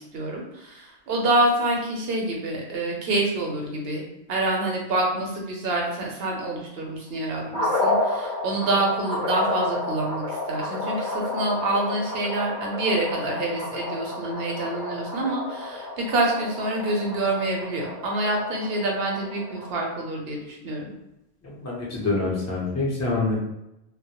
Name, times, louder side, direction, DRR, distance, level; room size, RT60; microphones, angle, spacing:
voice 1, 0.0-4.0 4.3-20.9, right 2 dB, 70° right, -1 dB, 0.8 m, -27 dB
sound 1, 7.5-19.8, left 2 dB, 50° left, 0.8 m, -30 dB
voice 2, 21.4-23.4, left 3 dB, 20° left, -5 dB, 0.5 m, -26 dB
2.1 x 2.1 x 2.8 m, 0.87 s
omnidirectional pair, 1.1 m